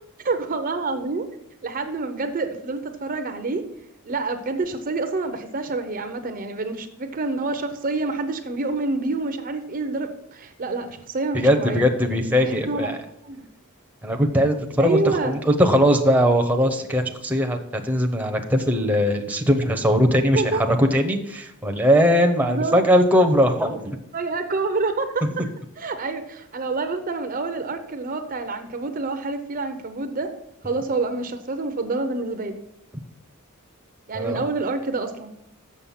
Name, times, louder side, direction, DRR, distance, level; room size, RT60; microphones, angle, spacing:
voice 1, 0.2-1.3 1.6-3.6 4.0-11.8 12.4-12.9 13.2-13.5 14.8-15.4 20.3-20.6 22.4-22.8 24.1-25.5 25.8-30.3 30.6-32.6 34.1-35.3, right 3 dB, 40° right, 8 dB, 0.6 m, -27 dB
voice 2, 11.3-13.0 14.0-24.0 25.2-25.3 30.6-30.8 34.1-34.4, equal, 5° right, 4 dB, 0.8 m, -20 dB
7.0 x 6.7 x 5.7 m, 0.79 s
head